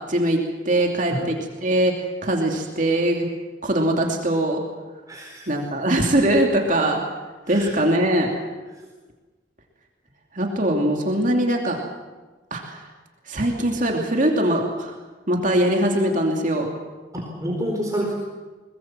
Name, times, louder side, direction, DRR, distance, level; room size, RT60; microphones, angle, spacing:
voice 1, 0.0-1.9 2.2-3.3 3.6-4.6 5.5-7.0 7.5-8.3 10.3-11.8 12.5-12.8 13.3-14.9 15.3-16.7, right 1 dB, 45° right, 1 dB, 2.7 m, -21 dB
voice 2, 5.1-5.5 7.5-7.7 17.1-18.1, equal, 20° right, -1 dB, 4.3 m, -28 dB
22.5 x 20.5 x 7.4 m, 1.2 s
head